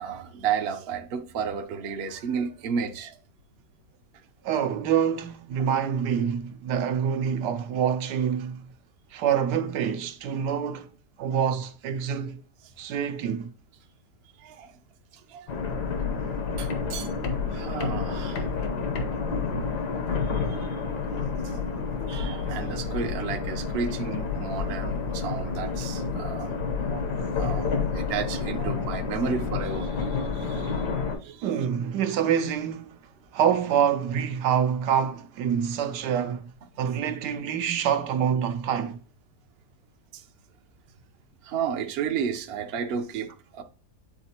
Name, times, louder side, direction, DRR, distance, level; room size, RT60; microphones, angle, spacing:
voice 1, 0.0-3.2 12.6-12.7 14.4-14.8 15.2-15.6 16.6-17.1 17.5-18.5 20.2-21.0 21.4-21.6 22.1-26.6 26.9-31.5 40.1-40.2 41.4-43.6, right 6 dB, 55° right, 0.7 m, -33 dB
voice 2, 4.4-8.7 9.1-10.9 11.2-12.4 12.8-13.5 31.4-33.0 33.3-36.5 36.8-39.0, right 8 dB, 85° right, 1.3 m, -26 dB
sound 1, 15.5-31.2, left 5 dB, 75° left, 1.6 m, -29 dB
8.5 x 4.1 x 2.8 m
omnidirectional pair, 1.8 m